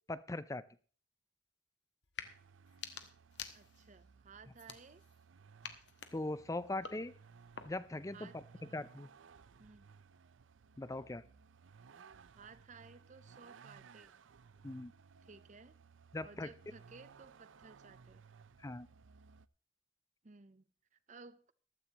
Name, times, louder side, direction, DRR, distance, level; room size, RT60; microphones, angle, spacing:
voice 1, 0.1-0.6 6.1-7.1 7.6-8.4 8.7-9.1 10.8-11.2 14.6-14.9 16.1-16.5 18.6-18.9, left 2 dB, 15° left, 0.5 m, -40 dB
sound 1, 2.0-2.3 2.7-4.0 4.5-5.2 5.6-8.0, left 7 dB, 65° left, 1.3 m, -50 dB
Vehicle, 2.2-19.5, right 5 dB, 80° right, 0.5 m, -60 dB
voice 2, 3.5-5.0 8.1-8.8 9.6-9.8 12.4-14.2 15.2-15.8 16.2-18.2 20.2-20.6 20.9-21.5, right 4 dB, 40° right, 0.7 m, -57 dB
14.5 x 13.5 x 3.0 m
head